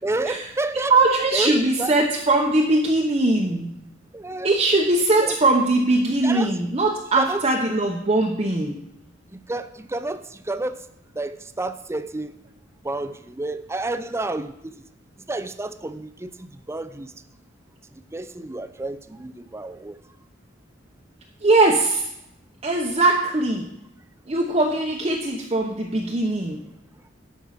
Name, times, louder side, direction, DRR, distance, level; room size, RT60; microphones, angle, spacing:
voice 1, 0.0-1.9 4.1-4.5 5.2-5.4 6.1-6.6 7.2-7.4 9.3-10.9 11.2-12.3 12.8-14.8 15.3-17.1 17.9-20.0, right 2 dB, 15° right, 10 dB, 0.5 m, -30 dB
voice 2, 0.7-3.8 4.4-8.8 21.4-22.1 22.6-23.7 24.3-26.6, right 2 dB, 30° right, -1 dB, 0.9 m, -21 dB
12.0 x 5.5 x 5.8 m, 0.81 s
head